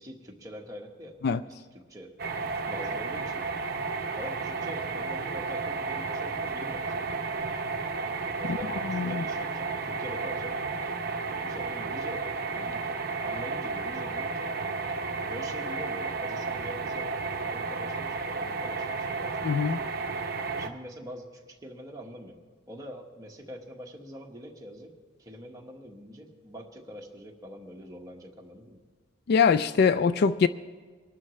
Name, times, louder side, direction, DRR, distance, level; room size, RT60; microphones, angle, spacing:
voice 1, 0.0-1.2 1.5-2.1 2.6-3.4 4.1-6.9 8.4-10.6 11.4-12.2 12.5-12.8 13.2-14.5 15.3-17.2 17.4-19.5 20.6-22.4 22.7-24.9 25.2-28.8, equal, 20° right, 1.4 m, -44 dB
sound 1, 2.2-20.7, right 4 dB, 50° right, 0.8 m, -32 dB
voice 2, 8.8-9.2 19.4-19.8 29.3-30.5, left 6 dB, 50° left, 0.3 m, -23 dB
23.0 x 12.0 x 3.2 m
head